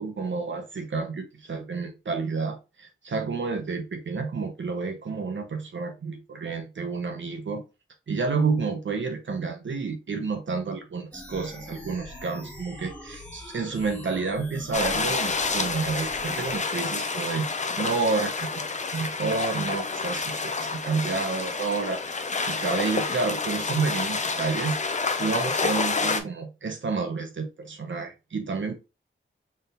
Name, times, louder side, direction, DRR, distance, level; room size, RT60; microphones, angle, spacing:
voice 1, 0.0-7.6 8.1-17.5 17.8-18.7 18.9-24.8 25.2-28.7, right 4 dB, 60° right, 0.9 m, -30 dB
sound 1, 11.1-16.6, left 1 dB, 5° left, 1.5 m, -43 dB
sound 2, 14.7-26.2, left 4 dB, 35° left, 0.6 m, -29 dB
4.3 x 3.7 x 2.5 m
wide cardioid pair, 85°, 21 cm